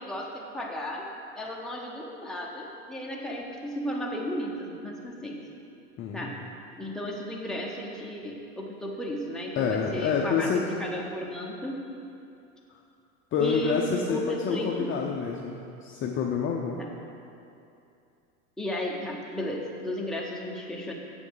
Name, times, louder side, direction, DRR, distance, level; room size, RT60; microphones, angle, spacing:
voice 1, 0.0-5.4 6.1-6.3 6.8-11.8 13.4-14.9 16.8-16.9 18.6-20.9, equal, ahead, -2 dB, 1.0 m, -34 dB
voice 2, 6.0-6.3 9.6-10.7 13.3-16.8, left 6 dB, 30° left, 0 dB, 0.6 m, -28 dB
7.8 x 7.1 x 4.8 m, 2.7 s
hypercardioid pair, 105°, 45 cm